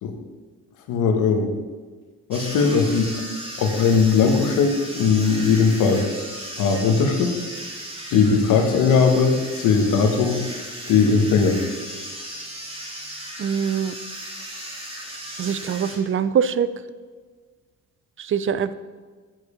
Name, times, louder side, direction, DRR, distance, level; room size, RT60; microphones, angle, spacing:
voice 1, 0.9-1.5 2.3-3.2 3.6-6.0 6.6-7.3 8.1-10.4 10.9-11.6, left 5 dB, 85° left, 4 dB, 1.2 m, -19 dB
sound 1, 2.3-16.0, right 1 dB, 20° right, 2.7 m, -36 dB
voice 2, 13.4-13.9 15.4-16.7 18.2-18.7, right 7 dB, 45° right, 14 dB, 0.5 m, -23 dB
7.8 x 6.9 x 4.9 m, 1.5 s
cardioid pair, 90°, 30 cm